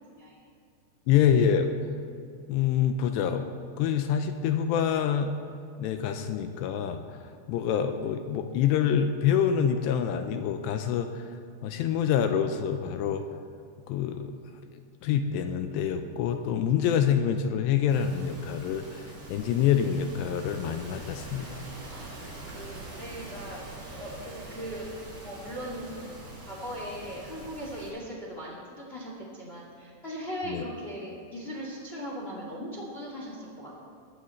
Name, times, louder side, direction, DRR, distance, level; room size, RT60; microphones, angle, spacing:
voice 1, 1.1-1.8 2.5-3.5 3.8-5.4 5.8-11.3 11.6-13.2 13.9-14.3 15.0-21.7 30.5-30.6, left 8 dB, 80° left, 7 dB, 2.6 m, -26 dB
sound 1, 17.9-27.9, right 2 dB, 60° right, 6.3 m, -44 dB
voice 2, 22.5-23.6 23.9-24.9 25.2-26.0 26.4-33.7, equal, 30° left, -3 dB, 1.1 m, -39 dB
21.0 x 12.5 x 3.2 m, 2.4 s
omnidirectional pair, 5.4 m